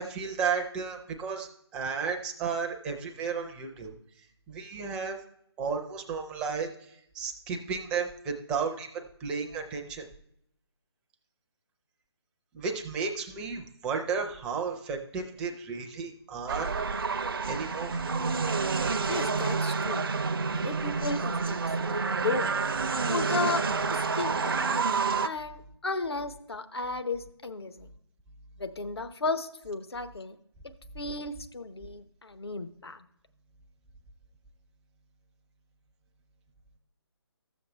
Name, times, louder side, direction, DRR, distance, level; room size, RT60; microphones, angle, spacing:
voice 1, 0.0-3.9 4.5-5.2 5.6-10.1 12.5-16.7 17.5-18.0, right 5 dB, 5° right, 3 dB, 0.4 m, -33 dB
sound 1, 16.5-25.3, right 4 dB, 55° right, 0.5 m, -29 dB
voice 2, 19.1-20.1 20.4-22.5 23.1-24.9 25.2-27.9 28.6-30.4 30.9-33.0, left 3 dB, 70° left, 9 dB, 0.8 m, -34 dB
13.0 x 7.0 x 3.2 m, 0.74 s
figure-of-eight pair, 145°, 14 cm